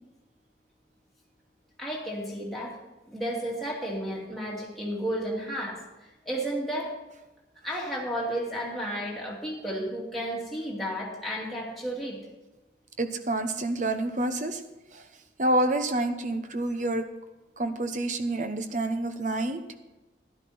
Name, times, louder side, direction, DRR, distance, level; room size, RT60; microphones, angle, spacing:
voice 1, 1.8-2.8 3.1-6.9 7.6-12.2, equal, ahead, -5 dB, 2.5 m, -32 dB
voice 2, 13.0-14.6 14.9-15.0 15.4-17.0 17.6-19.6, right 1 dB, 40° right, 8 dB, 0.9 m, -28 dB
12.0 x 11.0 x 4.3 m, 1.1 s
head